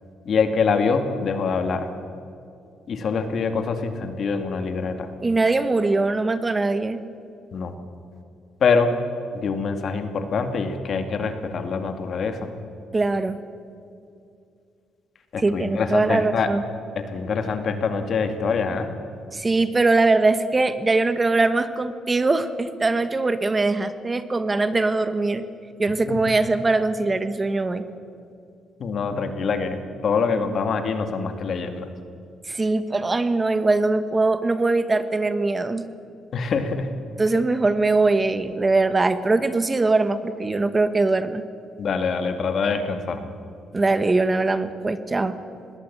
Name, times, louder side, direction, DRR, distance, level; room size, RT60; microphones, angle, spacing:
voice 1, 0.3-1.9 2.9-5.1 7.5-7.7 8.6-8.9 9.3-12.4 15.3-16.5 17.1-18.9 26.1-26.2 28.8-29.8 30.0-31.9 36.3-36.9 41.8-43.2, left 5 dB, 55° left, 7 dB, 2.4 m, -24 dB
voice 2, 5.2-7.0 12.9-13.4 15.4-16.6 19.3-25.4 25.8-27.8 32.5-35.8 37.2-41.4 43.7-45.4, right 3 dB, 25° right, 12 dB, 1.2 m, -21 dB
20.5 x 17.0 x 8.6 m, 2.5 s
cardioid pair, 90°, 0 cm